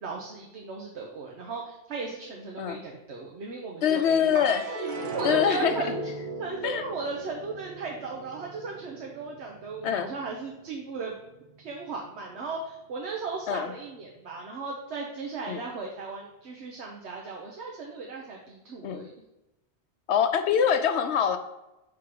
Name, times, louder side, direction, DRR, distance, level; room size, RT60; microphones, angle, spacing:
voice 1, 0.0-4.8 5.1-6.0 6.4-11.1 11.6-19.1, right 4 dB, 80° right, -1 dB, 1.1 m, -36 dB
voice 2, 3.8-4.6 5.2-6.0 6.6-6.8 9.8-10.1 13.5-13.7 15.5-15.6 18.8-19.1 20.1-21.4, left 8 dB, 80° left, 9 dB, 0.9 m, -24 dB
sound 1, 4.3-10.8 11.2-11.9, right 3 dB, 50° right, 0.9 m, -37 dB
5.8 x 3.8 x 4.9 m, 0.94 s
omnidirectional pair, 1.1 m